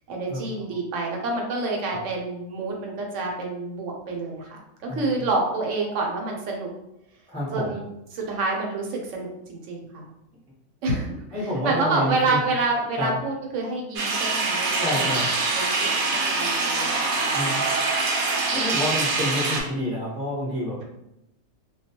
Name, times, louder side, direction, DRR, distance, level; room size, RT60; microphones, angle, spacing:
voice 1, 0.1-4.6 4.9-6.7 7.5-7.9 8.1-10.1 10.8-11.1 11.6-14.8 15.5-17.8, right 3 dB, 70° right, 0 dB, 0.9 m, -28 dB
voice 2, 4.9-5.2 7.3-7.8 11.3-12.4 13.0-13.1 14.8-15.3 17.3-17.6 18.5-20.8, left 1 dB, 5° left, -7 dB, 0.4 m, -28 dB
sound 1, 14.0-19.6, right 3 dB, 90° right, 1.0 m, -24 dB
2.2 x 2.2 x 2.8 m, 0.85 s
omnidirectional pair, 1.4 m